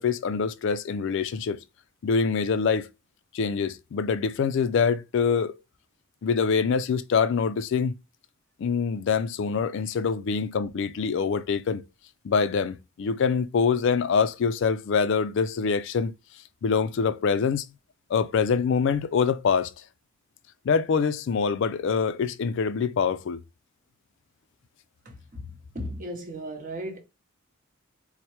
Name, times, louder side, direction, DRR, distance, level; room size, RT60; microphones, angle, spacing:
voice 1, 0.0-1.6 2.0-2.9 3.3-5.5 6.2-7.9 8.6-11.8 12.2-16.1 16.6-17.6 18.1-19.7 20.6-23.4, left 5 dB, 60° left, 0.3 m, -25 dB
voice 2, 25.0-27.0, equal, 40° right, 0.8 m, -36 dB
4.3 x 2.1 x 2.9 m
head